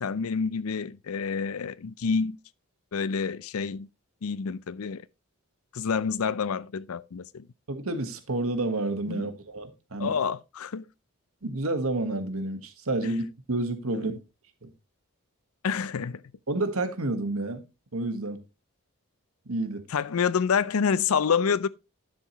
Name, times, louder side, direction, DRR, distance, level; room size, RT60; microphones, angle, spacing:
voice 1, 0.0-2.4 2.9-3.9 4.2-5.1 5.7-7.5 9.1-9.3 10.0-10.8 13.0-13.1 13.9-14.2 15.6-16.2 19.9-21.7, left 6 dB, 80° left, 0.5 m, -28 dB
voice 2, 7.7-10.1 11.4-14.1 14.6-14.7 16.5-17.6 17.9-18.4 19.5-19.8, right 2 dB, 80° right, 1.5 m, -30 dB
10.5 x 7.3 x 3.0 m
head